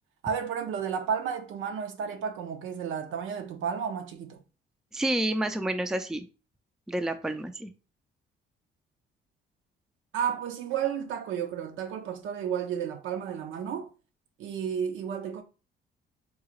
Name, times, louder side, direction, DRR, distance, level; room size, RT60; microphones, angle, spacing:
voice 1, 0.2-4.4 10.1-13.9 14.4-15.4, right 7 dB, 80° right, 0.6 m, -32 dB
voice 2, 4.9-6.3 6.9-7.7, right 1 dB, 5° right, 0.3 m, -29 dB
3.7 x 2.4 x 3.0 m
cardioid pair, 90°, 20 cm